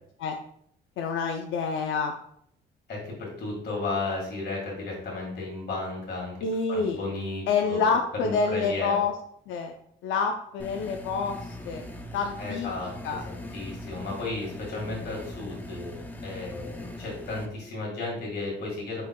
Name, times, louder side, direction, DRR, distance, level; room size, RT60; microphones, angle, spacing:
voice 1, 1.0-2.1 6.4-7.0 7.5-9.1 9.5-9.7 10.0-11.8 12.1-12.7 13.0-13.2, left 5 dB, 80° left, 4 dB, 0.5 m, -27 dB
voice 2, 2.9-6.4 6.7-7.8 8.2-9.0 12.4-19.1, left 3 dB, 55° left, -3 dB, 1.9 m, -34 dB
sound 1, 10.6-17.5, left 1 dB, 10° left, 0.6 m, -41 dB
4.9 x 4.3 x 2.3 m, 0.68 s
cardioid pair, 90°, 20 cm